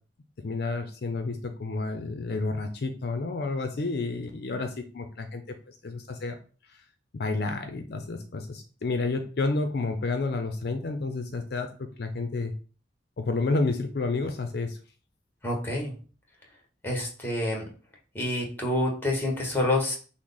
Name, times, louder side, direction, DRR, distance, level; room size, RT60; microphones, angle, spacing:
voice 1, 0.4-5.4 5.7-6.4 7.1-11.7 12.0-12.5 13.2-14.8, left 3 dB, 60° left, 6 dB, 0.5 m, -30 dB
voice 2, 15.4-15.9 16.8-17.6 18.1-20.0, left 1 dB, 10° left, -1 dB, 1.1 m, -27 dB
6.0 x 2.1 x 3.9 m, 0.38 s
head